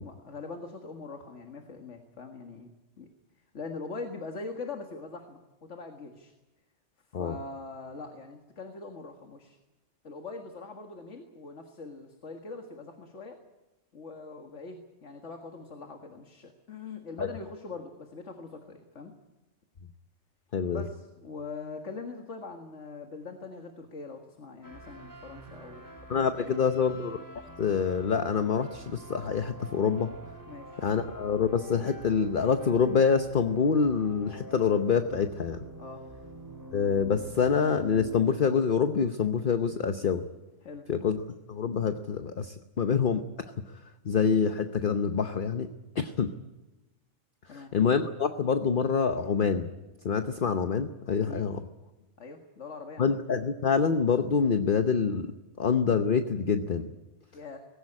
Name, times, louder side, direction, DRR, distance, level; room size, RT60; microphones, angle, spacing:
voice 1, 0.0-2.7 3.0-3.1 3.5-5.4 5.7-6.3 7.2-9.6 10.0-13.4 13.9-19.1 20.7-25.8 26.4-26.6 30.5-30.8 35.8-36.0 40.6-40.9 47.5-47.7 51.3-51.4 52.2-53.1 57.3-57.6, left 4 dB, 80° left, 4 dB, 2.1 m, -42 dB
voice 2, 20.5-20.8 26.1-27.2 27.6-30.1 30.8-35.7 36.7-40.3 40.9-41.2 41.5-43.2 44.0-45.7 46.0-46.3 47.5-49.7 50.0-51.6 53.0-56.9, left 6 dB, 50° left, 8 dB, 1.0 m, -26 dB
sound 1, 24.6-38.2, right 1 dB, 15° right, 2.5 m, -47 dB
19.5 x 17.0 x 9.8 m, 1.1 s
omnidirectional pair, 1.2 m